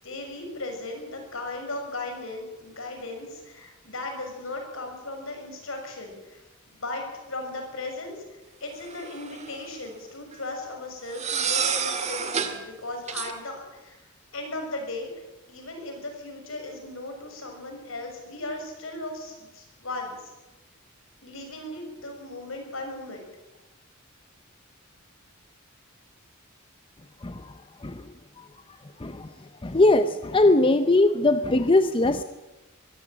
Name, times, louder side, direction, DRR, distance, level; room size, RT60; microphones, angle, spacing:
voice 1, 0.0-6.4 6.6-8.2 8.6-15.1 15.5-20.3 21.2-23.3, left 2 dB, 70° left, 3 dB, 6.4 m, -37 dB
sound 1, 8.9-9.6 11.1-12.6 13.1-13.3, right 6 dB, 35° right, 2.0 m, -28 dB
voice 2, 29.6-32.2, left 2 dB, 25° left, 10 dB, 0.7 m, -20 dB
23.0 x 15.0 x 8.7 m, 1.1 s
head